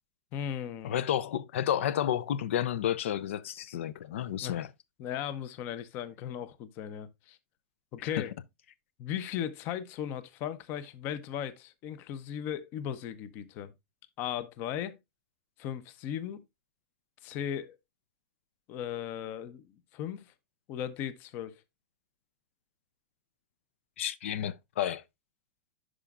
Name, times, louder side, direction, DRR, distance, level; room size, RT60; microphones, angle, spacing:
voice 1, 0.3-0.9 4.4-4.6 5.0-7.4 7.9-8.3 9.0-13.7 14.2-15.0 15.6-16.4 17.2-17.8 18.7-19.6 19.9-20.3 20.7-21.6, left 9 dB, 30° left, 0.6 m, -37 dB
voice 2, 0.8-4.7 8.0-8.2 24.0-25.0, left 10 dB, 85° left, 0.5 m, -31 dB
11.0 x 5.0 x 2.3 m
supercardioid pair, 170°, 7 cm